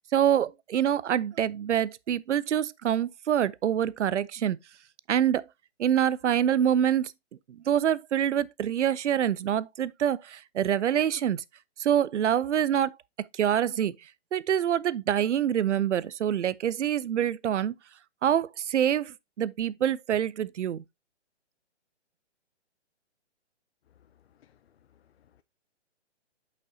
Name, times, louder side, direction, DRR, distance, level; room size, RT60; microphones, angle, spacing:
voice 1, 0.1-4.6 5.1-5.4 5.8-7.1 7.5-11.4 11.8-13.9 14.3-17.7 18.2-20.8, right 10 dB, 85° right, 0.6 m, -26 dB
voice 2, 23.9-25.4, left 10 dB, 60° left, 0.6 m, -64 dB
8.4 x 5.3 x 2.7 m
hypercardioid pair, 155°, 35 cm